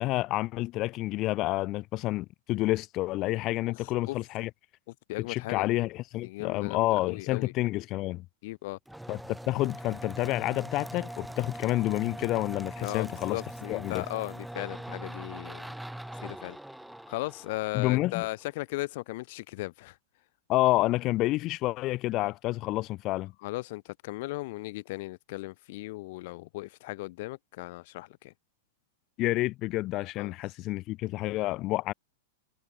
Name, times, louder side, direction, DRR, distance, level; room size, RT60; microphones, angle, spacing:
voice 1, 0.0-4.5 5.2-8.2 9.1-13.4 13.7-14.0 17.7-18.3 20.5-23.3 29.2-31.9, left 18 dB, 35° left, 1.5 m, -29 dB
voice 2, 3.8-4.2 5.1-5.7 6.2-7.5 8.4-8.8 12.8-15.7 16.1-16.6 17.1-20.0 23.4-28.3 30.2-30.3, left 20 dB, 55° left, 1.2 m, -37 dB
sound 1, 8.9-18.4, right 1 dB, ahead, 1.9 m, -42 dB
supercardioid pair, 145°, 0 cm